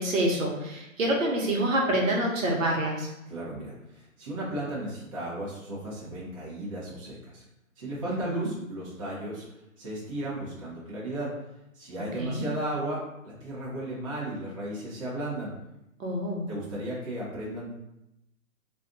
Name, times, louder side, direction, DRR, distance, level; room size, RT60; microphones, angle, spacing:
voice 1, 0.0-3.1 8.1-8.5 12.2-12.5 16.0-16.5, right 1 dB, 70° right, -1 dB, 1.1 m, -27 dB
voice 2, 3.3-7.4 7.8-9.4 9.8-11.3 11.7-15.5 16.5-17.7, right 1 dB, 25° right, -8 dB, 0.7 m, -35 dB
2.5 x 2.4 x 3.7 m, 0.88 s
hypercardioid pair, 160°, 41 cm